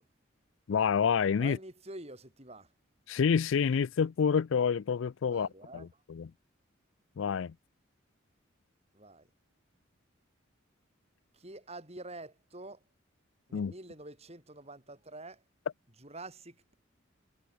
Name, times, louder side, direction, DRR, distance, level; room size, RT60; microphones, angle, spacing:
voice 1, 0.7-1.6 3.1-6.3 7.2-7.5 13.5-13.7, left 6 dB, 70° left, 0.4 m, -28 dB
voice 2, 1.4-2.7 5.3-5.9 8.9-9.3 11.3-12.8 13.5-15.4 16.0-16.7, right 2 dB, 30° right, 7.9 m, -47 dB
head